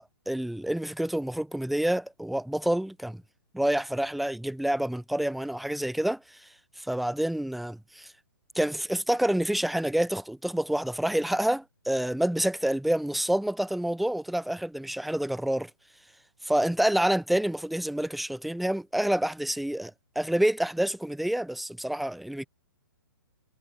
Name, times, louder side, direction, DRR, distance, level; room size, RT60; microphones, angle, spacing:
voice 1, 0.0-3.2 3.5-6.5 6.8-8.1 8.6-15.7 16.4-22.5, right 1 dB, ahead, 0.5 m, -28 dB
figure-of-eight pair, 120°, 11 cm